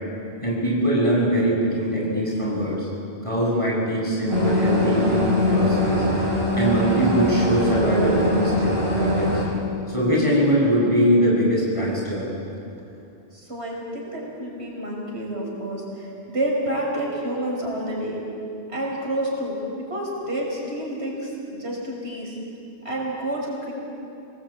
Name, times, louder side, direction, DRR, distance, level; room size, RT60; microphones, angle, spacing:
voice 1, 0.4-2.9 3.2-6.0 6.5-9.3 9.9-12.2, equal, 30° left, -5 dB, 7.8 m, -22 dB
sound 1, 4.3-9.5, left 1 dB, 25° right, 6.2 m, -22 dB
voice 2, 13.3-18.2 18.7-22.4 22.8-23.7, right 1 dB, 70° right, -2 dB, 6.1 m, -29 dB
26.5 x 19.5 x 8.9 m, 2.7 s
omnidirectional pair, 1.1 m